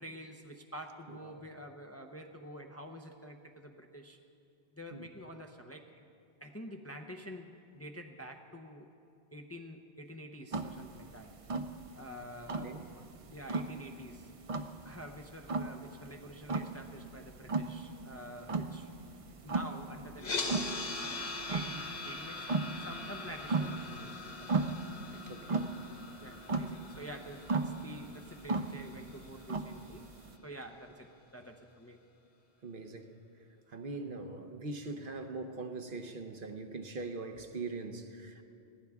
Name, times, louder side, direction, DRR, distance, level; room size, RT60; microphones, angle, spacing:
voice 1, 0.0-4.2 4.7-6.1 6.4-8.9 9.3-11.3 11.9-13.0 13.3-14.3 14.8-18.9 19.4-25.6 26.2-30.1 30.4-32.0, equal, 15° left, 0.6 m, -48 dB
sound 1, 10.5-30.3, right 3 dB, 40° right, 0.6 m, -36 dB
sound 2, 20.2-30.3, left 3 dB, 45° left, 1.0 m, -42 dB
voice 2, 25.2-25.7 32.6-33.2 33.7-38.4, right 3 dB, 60° right, 1.0 m, -42 dB
21.0 x 16.0 x 3.6 m
omnidirectional pair, 1.1 m